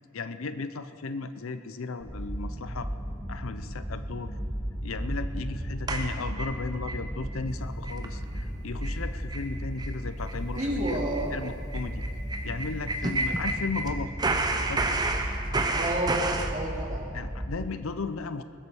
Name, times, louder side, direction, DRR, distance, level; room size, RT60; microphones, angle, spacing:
voice 1, 0.1-2.9 3.3-4.4 4.8-10.7 11.3-12.0 12.4-14.1 14.7-14.9 17.1-18.4, left 4 dB, 65° left, 11 dB, 0.6 m, -35 dB
sound 1, 2.0-17.6, equal, 5° left, 2.0 m, -35 dB
sound 2, 5.9-7.0 7.4-7.5 7.8-8.1 8.4-8.5 8.8-9.0 9.3-9.5 9.8-9.9 10.3-13.9 14.2-16.5, right 2 dB, 20° right, 0.8 m, -30 dB
voice 2, 10.5-11.4 13.1-13.2 15.7-17.0, right 1 dB, 35° right, -3 dB, 2.9 m, -30 dB
20.0 x 8.2 x 6.9 m, 2.4 s
head